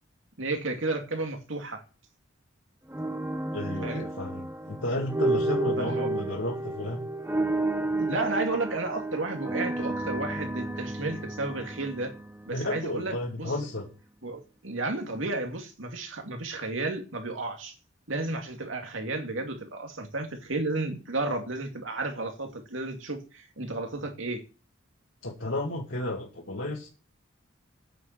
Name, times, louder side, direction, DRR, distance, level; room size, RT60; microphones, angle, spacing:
voice 1, 0.4-1.8 3.8-4.1 5.8-6.1 8.0-12.1 12.5-13.5 14.2-17.7 18.1-24.4, right 2 dB, 75° right, 4 dB, 2.6 m, -32 dB
sound 1, 2.9-13.0, right 2 dB, 10° right, 0.7 m, -31 dB
voice 2, 3.5-7.0 12.5-13.9 25.2-26.9, left 1 dB, 70° left, -2 dB, 2.2 m, -32 dB
9.2 x 7.1 x 7.7 m, 0.33 s
head